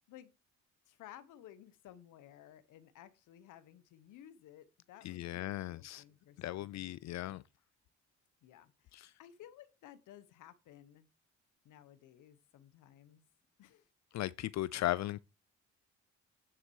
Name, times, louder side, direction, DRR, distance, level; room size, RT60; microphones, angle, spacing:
voice 1, 0.9-6.9 8.4-11.1 11.6-13.2 13.6-13.9, left 11 dB, 85° left, 1.0 m, -57 dB
voice 2, 5.0-6.0 6.4-7.4 8.9-9.1 14.1-15.2, left 15 dB, 65° left, 0.5 m, -37 dB
9.7 x 5.9 x 4.7 m
cardioid pair, 90°, 30 cm